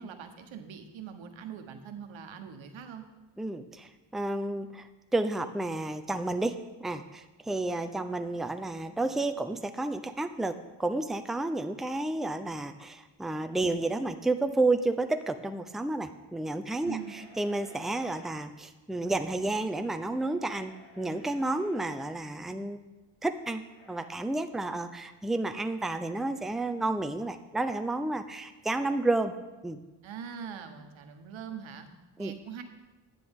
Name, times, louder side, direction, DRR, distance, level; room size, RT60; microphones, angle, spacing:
voice 1, 0.0-3.0 16.8-17.1 30.0-31.9 32.2-32.6, right 7 dB, 85° right, 6 dB, 1.2 m, -42 dB
voice 2, 3.4-4.9 5.1-22.8 23.2-29.3 29.6-29.8 32.2-32.3, right 2 dB, ahead, 8 dB, 0.6 m, -31 dB
sound 1, 16.7-18.4 19.9-22.1 23.6-24.1, equal, 80° left, 3.5 m, -55 dB
11.0 x 9.9 x 3.7 m, 1.1 s
cardioid pair, 70°, 45 cm